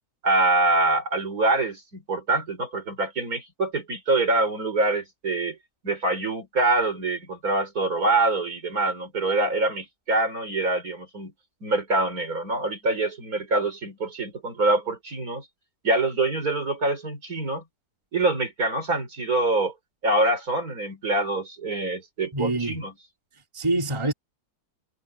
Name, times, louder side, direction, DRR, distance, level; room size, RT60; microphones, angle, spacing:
voice 1, 0.2-5.6 5.8-11.3 11.6-15.4 15.8-17.6 18.1-19.7 20.0-22.9, right 2 dB, 55° right, 4.6 m, -25 dB
voice 2, 22.3-22.8 23.5-24.1, right 2 dB, 15° right, 2.8 m, -25 dB
omnidirectional pair, 1.9 m